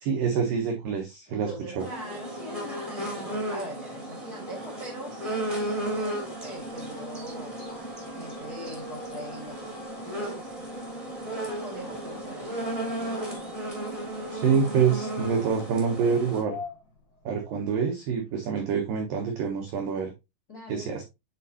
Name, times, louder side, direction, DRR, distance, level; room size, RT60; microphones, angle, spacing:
voice 1, 0.0-1.9 14.3-16.6 17.3-20.1 20.7-21.0, right 6 dB, 85° right, 2 dB, 1.9 m, -26 dB
voice 2, 1.3-7.6 8.1-9.8 10.1-10.5 11.3-12.6 20.5-20.9, right 1 dB, 85° left, -1 dB, 0.8 m, -42 dB
sound 1, 1.8-16.4, right 1 dB, 35° right, 0.5 m, -34 dB
sound 2, 5.3-17.8, left 6 dB, 65° left, 1.4 m, -50 dB
8.9 x 4.2 x 2.8 m, 0.23 s
omnidirectional pair, 5.5 m